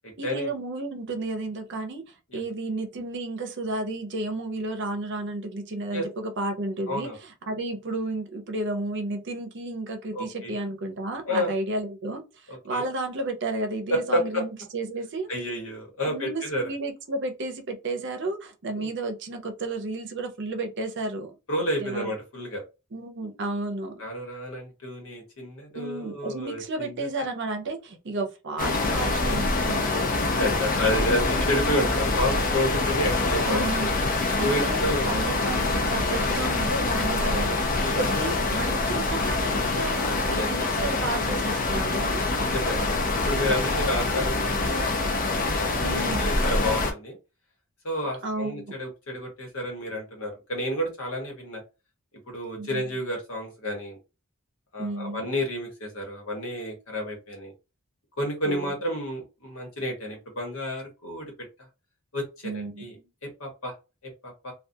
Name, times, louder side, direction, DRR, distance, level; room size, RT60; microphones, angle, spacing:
voice 1, 0.2-15.3 16.1-21.3 21.8-22.1 22.9-24.0 25.7-29.9 33.4-33.9 34.4-37.5 37.9-42.2 45.8-46.3 48.2-48.8 52.6-52.8 54.8-55.3 58.4-58.7 62.4-63.1, right 2 dB, 60° right, 0.6 m, -32 dB
voice 2, 6.9-7.2 10.1-10.5 11.2-11.5 12.5-12.9 13.9-14.4 15.3-16.6 18.8-18.9 21.5-22.6 24.0-27.1 30.4-33.9 34.4-35.5 37.2-38.0 40.3-40.5 42.4-47.1 47.8-51.6 52.3-54.0 54.7-57.5 58.2-61.3 62.1-63.0 63.2-63.7 64.0-64.5, equal, 80° left, 1.1 m, -30 dB
sound 1, 28.6-46.9, left 3 dB, 40° left, 0.5 m, -25 dB
2.3 x 2.3 x 2.6 m
head